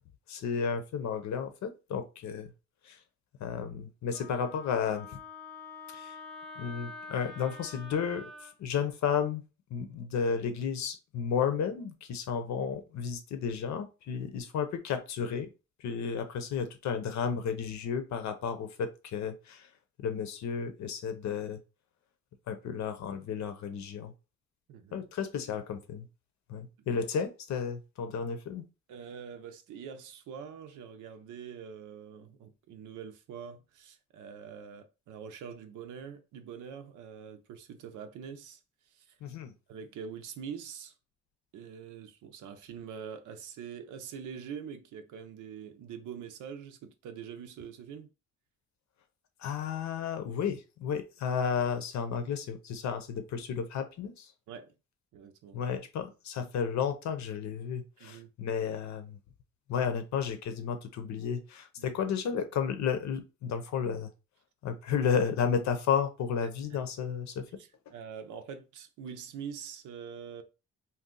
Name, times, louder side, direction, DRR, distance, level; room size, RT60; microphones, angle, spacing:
voice 1, 0.3-2.5 2.8-3.0 3.4-5.1 5.9-6.2 6.6-9.4 9.7-15.5 15.8-19.7 20.0-21.6 22.5-24.1 24.9-26.1 26.5-28.6 39.2-39.5 49.4-54.3 55.5-59.2 59.7-64.1 64.6-67.4, left 7 dB, 65° left, 0.7 m, -32 dB
Wind instrument woodwind instrument, 4.1-8.5, left 4 dB, ahead, 0.7 m, -46 dB
voice 2, 24.7-25.0 26.8-27.0 28.9-38.6 38.9-39.1 39.7-40.9 41.5-48.1 54.5-54.7 55.1-55.6 58.0-58.3 61.8-61.9 66.7-66.8 67.6-70.4, right 7 dB, 80° right, 0.6 m, -44 dB
2.7 x 2.3 x 3.7 m
cardioid pair, 90°, 30 cm